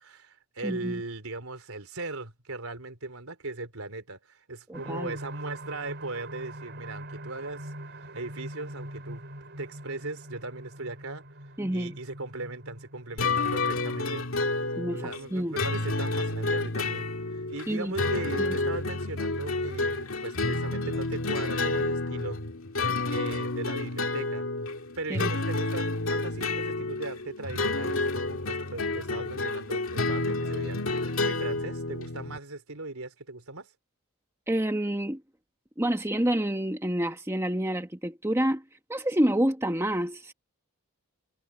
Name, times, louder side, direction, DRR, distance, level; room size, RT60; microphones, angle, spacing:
voice 1, 0.0-7.7 8.1-11.2 11.7-14.2 14.9-22.4 23.1-24.5 25.0-33.7, right 2 dB, 75° right, 3.6 m, -38 dB
voice 2, 0.6-1.0 4.7-5.1 11.6-11.9 14.8-15.6 17.7-17.9 18.4-18.5 25.1-25.3 34.5-35.2 35.8-38.6 38.9-40.3, right 1 dB, 10° right, 1.2 m, -28 dB
sound 1, 4.7-18.2 18.7-18.8 19.2-19.3, right 1 dB, 50° right, 5.2 m, -44 dB
sound 2, 13.2-32.4, left 2 dB, 65° left, 2.2 m, -30 dB
head